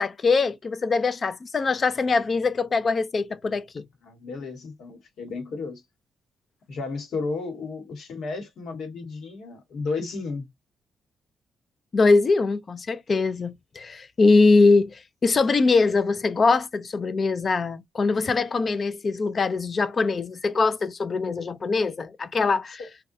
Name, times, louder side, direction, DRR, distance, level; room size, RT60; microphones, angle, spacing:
voice 1, 0.0-3.8 11.9-22.8, left 3 dB, 40° left, 0.4 m, -22 dB
voice 2, 4.0-5.8 6.7-10.5 22.8-22.9, left 4 dB, 75° left, 1.3 m, -33 dB
3.5 x 2.2 x 2.6 m
cardioid pair, 100°, 0 cm